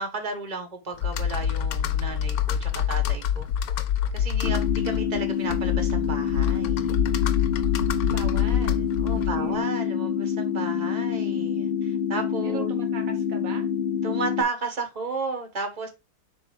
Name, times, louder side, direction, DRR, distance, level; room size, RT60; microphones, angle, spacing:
voice 1, 0.0-3.5 4.1-6.9 9.0-12.7 14.0-15.9, right 3 dB, 30° right, 1.3 m, -33 dB
Computer keyboard, 1.0-9.6, left 9 dB, 75° left, 1.0 m, -26 dB
sound 1, 4.4-14.4, left 8 dB, 50° left, 0.7 m, -27 dB
voice 2, 8.0-9.7 12.4-13.7, right 7 dB, 65° right, 1.0 m, -40 dB
6.9 x 2.7 x 5.2 m
omnidirectional pair, 1.7 m